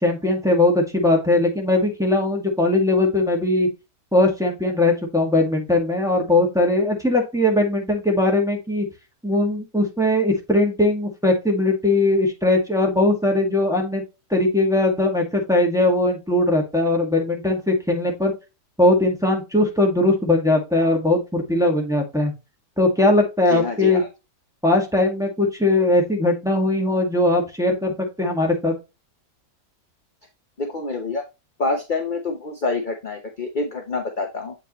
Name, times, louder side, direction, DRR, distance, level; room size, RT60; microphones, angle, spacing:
voice 1, 0.0-3.7 4.1-8.8 9.2-14.0 14.3-18.3 18.8-22.3 22.8-24.0 24.6-28.7, left 2 dB, ahead, 0 dB, 1.7 m, -20 dB
voice 2, 23.5-24.1 30.6-31.2 31.6-34.5, left 3 dB, 35° left, 3 dB, 0.9 m, -26 dB
7.7 x 5.0 x 3.1 m, 0.26 s
omnidirectional pair, 1.8 m